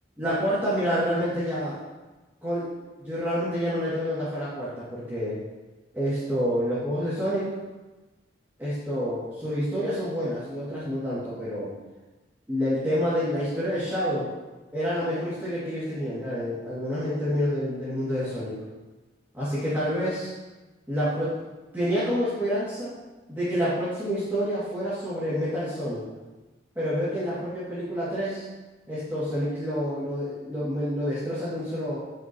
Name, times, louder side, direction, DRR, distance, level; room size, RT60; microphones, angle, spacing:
voice 1, 0.2-1.8 2.4-5.4 5.9-7.6 8.6-11.7 12.5-14.3 14.7-18.6 19.3-20.3 20.9-21.4 21.7-22.9 23.3-26.1 26.7-28.4 28.9-32.0, equal, 10° right, -13 dB, 2.5 m, -28 dB
15.5 x 6.0 x 3.1 m, 1.2 s
head